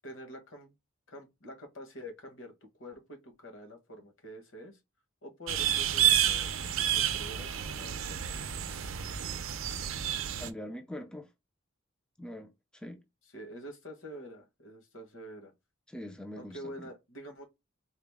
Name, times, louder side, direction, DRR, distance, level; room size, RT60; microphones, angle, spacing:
voice 1, 0.0-0.7 1.1-4.8 5.2-8.5 13.3-15.5 16.4-17.4, equal, 70° left, 1.4 m, -47 dB
sound 1, 5.5-10.5, right 9 dB, 75° right, 0.5 m, -30 dB
voice 2, 10.4-11.3 12.2-13.0 15.9-16.7, left 1 dB, 5° left, 0.4 m, -43 dB
3.9 x 2.0 x 3.5 m
head